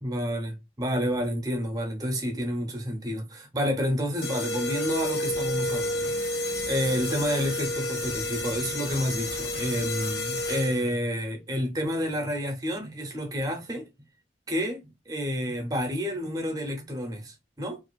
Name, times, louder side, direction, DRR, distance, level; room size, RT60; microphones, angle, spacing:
voice 1, 0.0-13.9 14.5-17.8, equal, 20° right, 0.6 m, -30 dB
sound 1, 4.2-11.0, left 1 dB, 70° left, 0.7 m, -30 dB
2.5 x 2.4 x 2.2 m
head